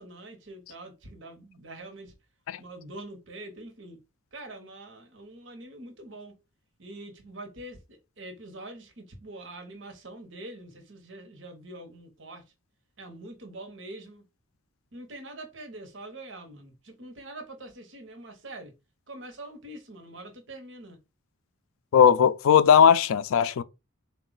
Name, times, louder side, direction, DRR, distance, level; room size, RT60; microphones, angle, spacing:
voice 1, 0.0-2.1 2.6-4.0 4.3-6.3 6.8-7.8 8.2-12.4 13.0-14.2 14.9-16.7 17.0-18.7 19.1-21.0, right 2 dB, 60° right, 0.9 m, -44 dB
voice 2, 21.9-23.6, left 8 dB, 80° left, 0.3 m, -18 dB
3.8 x 2.3 x 3.8 m
head